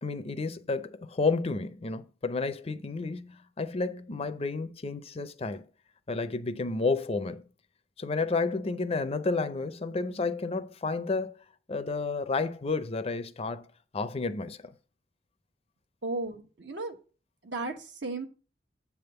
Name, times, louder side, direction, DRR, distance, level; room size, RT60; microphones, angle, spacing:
voice 1, 0.0-5.6 6.1-7.4 8.0-11.3 11.7-13.7 13.9-14.7, left 3 dB, 30° left, 0.5 m, -31 dB
voice 2, 16.0-16.9 17.4-17.7 18.0-18.3, right 2 dB, 70° right, 1.2 m, -34 dB
8.4 x 3.5 x 6.7 m
head